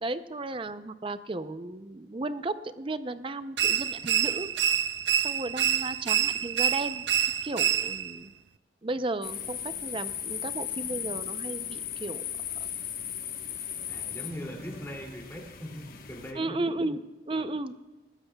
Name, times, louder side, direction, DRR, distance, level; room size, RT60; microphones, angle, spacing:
voice 1, 0.0-4.5 5.1-7.1 7.4-8.3 8.8-12.2 16.4-17.7, right 2 dB, 30° right, 12 dB, 0.5 m, -34 dB
sound 1, 3.6-8.2, right 9 dB, 75° right, 0.5 m, -27 dB
sound 2, 9.2-16.3, left 9 dB, 55° left, 1.2 m, -37 dB
voice 2, 13.9-16.6 17.4-17.5, equal, 15° left, -1 dB, 2.6 m, -40 dB
20.5 x 14.5 x 2.3 m, 1.2 s
head